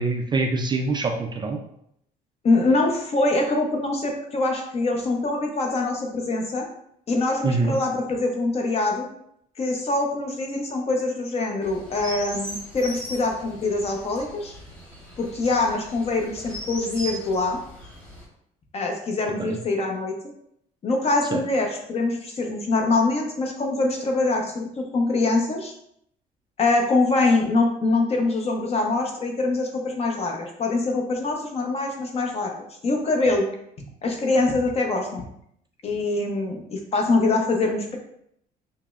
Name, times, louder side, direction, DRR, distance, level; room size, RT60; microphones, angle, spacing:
voice 1, 0.0-1.6 7.4-7.8 19.4-19.6 21.3-21.4, right 3 dB, 25° right, 3 dB, 0.4 m, -24 dB
voice 2, 2.4-6.7 7.1-9.1 9.6-14.5 15.2-17.6 18.7-20.1 20.8-25.7 26.6-32.5 32.8-33.5 34.0-35.2 35.8-38.0, left 2 dB, 35° left, 2 dB, 0.7 m, -24 dB
Chirp tweet, 11.6-18.2, right 1 dB, 5° left, 1.2 m, -39 dB
5.3 x 2.0 x 2.4 m, 0.73 s
cardioid pair, 110°, 17 cm